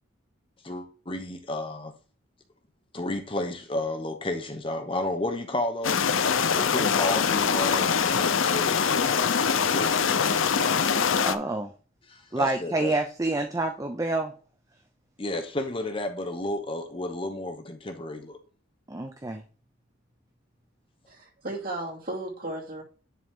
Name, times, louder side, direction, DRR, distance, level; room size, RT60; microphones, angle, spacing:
voice 1, 0.6-1.9 2.9-6.0 6.5-10.6 12.1-12.9 15.2-18.4, left 1 dB, 25° left, 1.0 m, -32 dB
sound 1, 5.8-11.3, left 6 dB, 85° left, 0.6 m, -23 dB
voice 2, 11.2-11.7 12.3-14.3 18.9-19.4, right 2 dB, 15° right, 0.6 m, -28 dB
voice 3, 21.1-22.8, right 2 dB, 45° right, 2.9 m, -35 dB
10.0 x 4.0 x 3.6 m
head